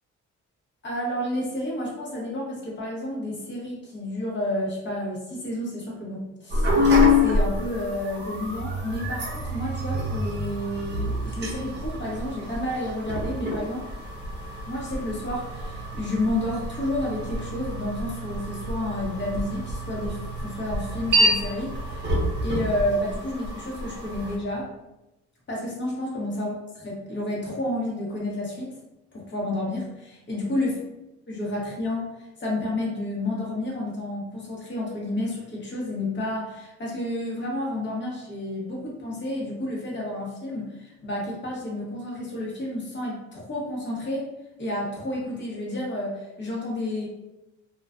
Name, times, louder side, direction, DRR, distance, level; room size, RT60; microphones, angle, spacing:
voice 1, 0.8-13.9 14.7-24.7 25.5-28.8 29.1-30.8 31.3-44.3 44.6-47.1, left 1 dB, 40° left, -4 dB, 1.0 m, -30 dB
sound 1, 6.5-24.4, left 2 dB, 35° right, 0.6 m, -27 dB
2.3 x 2.1 x 2.4 m, 0.95 s
cardioid pair, 90°, 30 cm